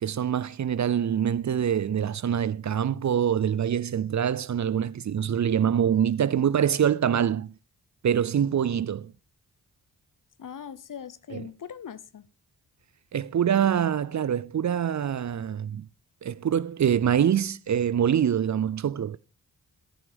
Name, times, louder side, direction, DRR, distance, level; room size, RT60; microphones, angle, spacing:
voice 1, 0.0-7.5 8.0-9.1 11.3-11.4 13.1-15.9 16.2-19.2, right 9 dB, 50° right, 0.6 m, -25 dB
voice 2, 10.4-12.3, left 8 dB, 55° left, 0.8 m, -40 dB
14.0 x 6.0 x 5.1 m
cardioid pair, 50°, 37 cm